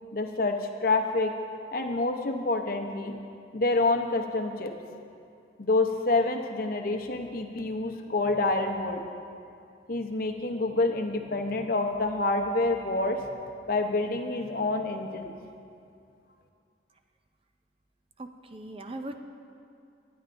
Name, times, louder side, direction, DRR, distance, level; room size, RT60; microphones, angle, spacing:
voice 1, 0.1-0.6 0.8-1.3 1.7-3.2 3.5-4.7 5.6-9.0 9.9-13.2 13.7-15.3, left 2 dB, 50° left, 4 dB, 0.8 m, -27 dB
voice 2, 18.2-19.2, right 1 dB, 30° right, 6 dB, 0.5 m, -39 dB
20.0 x 10.0 x 2.6 m, 2.5 s
head